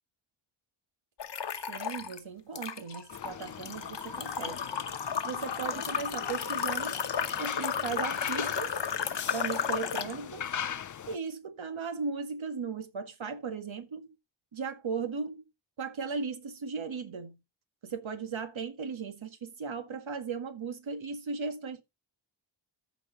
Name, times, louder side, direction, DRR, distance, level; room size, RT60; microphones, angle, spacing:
sound 1, 1.2-2.2 2.6-10.2, left 7 dB, 65° left, 1.1 m, -33 dB
voice 1, 1.7-4.7 5.2-7.0 7.4-8.7 9.3-10.5 11.1-14.1 14.5-15.5 15.8-17.4 17.8-21.8, right 5 dB, 80° right, 1.8 m, -37 dB
sound 2, 3.1-11.2, left 8 dB, 45° left, 0.4 m, -40 dB
14.0 x 4.9 x 4.0 m
wide cardioid pair, 95°, 46 cm